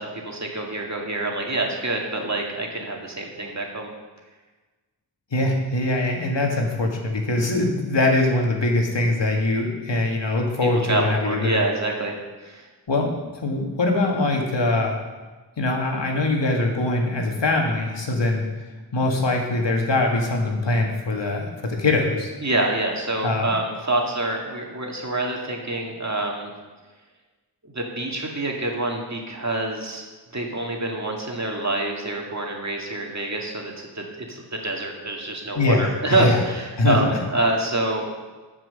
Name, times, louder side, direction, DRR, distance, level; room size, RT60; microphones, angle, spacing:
voice 1, 0.0-3.9 10.9-12.7 22.4-26.5 27.6-30.0 30.3-38.1, right 2 dB, 40° right, 0 dB, 2.2 m, -26 dB
voice 2, 5.3-11.6 12.9-15.0 15.6-18.5 18.9-22.3 23.2-23.5 35.6-36.4 36.8-37.2, left 2 dB, 85° left, 1 dB, 2.0 m, -22 dB
14.0 x 6.1 x 6.6 m, 1.3 s
wide cardioid pair, 65°, 42 cm